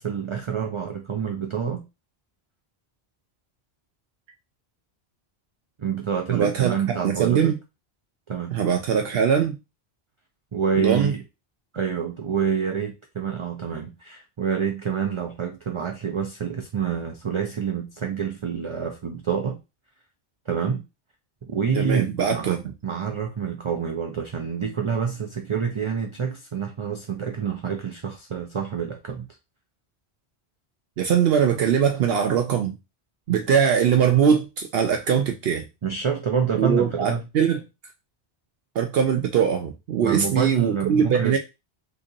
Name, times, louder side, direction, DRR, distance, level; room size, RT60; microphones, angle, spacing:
voice 1, 0.0-1.8 5.8-7.5 8.3-8.6 10.5-11.2 11.7-19.6 20.5-20.8 21.4-29.3 35.8-37.2 40.0-41.4, right 6 dB, 45° right, 0.4 m, -27 dB
voice 2, 6.3-6.7 7.0-7.5 8.5-9.6 10.8-11.1 21.8-22.6 31.0-32.8 33.3-35.6 36.6-37.6 38.8-41.4, right 7 dB, 70° right, 0.8 m, -21 dB
2.9 x 2.7 x 3.7 m
omnidirectional pair, 1.1 m